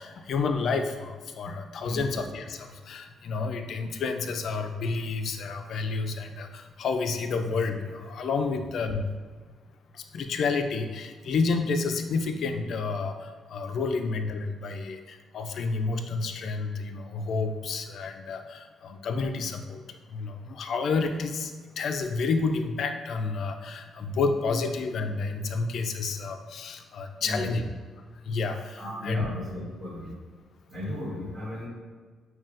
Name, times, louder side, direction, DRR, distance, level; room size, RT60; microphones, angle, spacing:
voice 1, 0.0-9.1 9.9-27.6 28.2-29.3, left 4 dB, 65° left, 7 dB, 0.3 m, -30 dB
voice 2, 1.8-2.1 24.1-24.2 27.2-27.5 28.8-30.2 30.7-31.7, left 1 dB, 40° right, -4 dB, 1.3 m, -35 dB
5.5 x 2.2 x 2.5 m, 1.5 s
cardioid pair, 90°, 0 cm